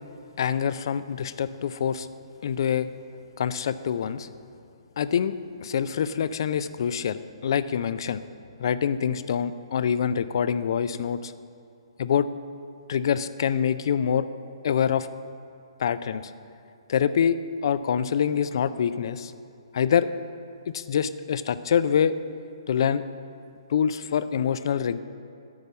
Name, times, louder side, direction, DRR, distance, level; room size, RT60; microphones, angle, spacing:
voice 1, 0.4-2.1 2.4-2.9 3.4-4.3 5.0-5.4 5.6-8.2 8.6-11.3 12.0-12.3 12.9-14.3 14.6-15.1 15.8-16.3 16.9-19.3 19.7-20.1 20.7-22.1 22.7-23.0 23.7-25.0, left 8 dB, 55° left, 14 dB, 0.4 m, -25 dB
10.5 x 5.4 x 8.2 m, 2.5 s
hypercardioid pair, 135°, 3 cm